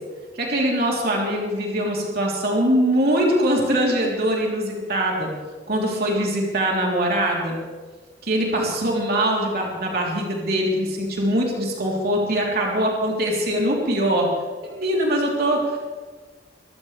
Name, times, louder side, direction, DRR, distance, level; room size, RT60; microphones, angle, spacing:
voice 1, 0.3-5.3 5.7-7.6 8.2-14.3 14.6-15.8, right 1 dB, 55° right, -2 dB, 3.7 m, -22 dB
24.0 x 16.0 x 3.5 m, 1.4 s
head